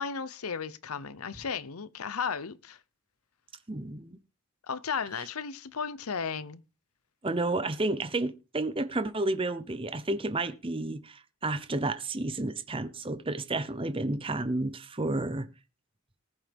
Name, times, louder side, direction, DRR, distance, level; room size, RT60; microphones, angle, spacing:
voice 1, 0.0-2.8 4.7-6.6, left 6 dB, 85° left, 0.8 m, -34 dB
voice 2, 3.7-4.2 7.2-15.5, right 2 dB, 25° right, 0.8 m, -31 dB
19.0 x 7.3 x 3.5 m
head